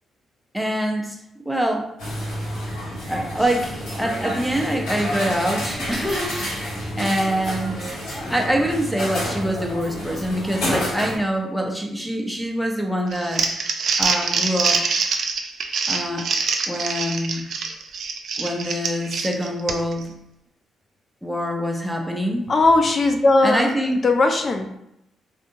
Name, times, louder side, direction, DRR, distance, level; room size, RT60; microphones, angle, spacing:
voice 1, 0.5-1.9 3.1-6.7 7.0-7.9 8.3-13.5 14.0-14.8 15.9-16.3 16.7-17.4 18.4-20.1 21.2-22.5 23.4-24.0, equal, ahead, 1 dB, 0.7 m, -25 dB
sound 1, 2.0-11.2, equal, 75° left, 1.3 m, -29 dB
Crumpling crinkling, 13.1-20.0, right 5 dB, 60° right, 0.4 m, -24 dB
voice 2, 22.5-23.7 24.0-24.7, left 2 dB, 40° left, 5 dB, 0.3 m, -18 dB
3.5 x 2.6 x 2.6 m, 0.81 s
hypercardioid pair, 40°, 0 cm